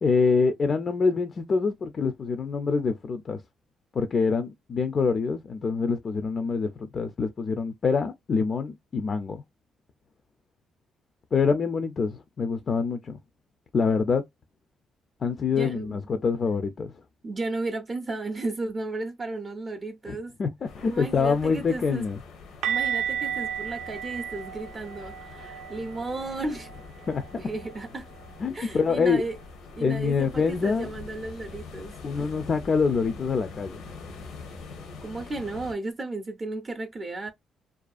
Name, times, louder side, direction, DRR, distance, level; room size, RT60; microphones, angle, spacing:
voice 1, 0.0-3.4 3.9-9.4 11.3-13.2 13.7-14.2 15.2-16.9 20.1-22.2 27.1-27.2 28.4-29.2 29.8-30.9 32.0-33.8, left 5 dB, 45° left, 0.3 m, -25 dB
voice 2, 15.6-16.0 17.2-20.4 20.8-22.0 22.7-26.7 27.4-28.1 28.5-29.4 29.8-31.9 35.0-37.3, right 2 dB, 30° right, 0.4 m, -34 dB
sound 1, 20.6-35.7, left 4 dB, 80° left, 0.7 m, -44 dB
sound 2, 22.6-28.4 28.7-28.9 29.2-29.4 32.6-32.7, right 9 dB, 90° right, 0.4 m, -34 dB
2.4 x 2.3 x 2.3 m
cardioid pair, 90°, 0 cm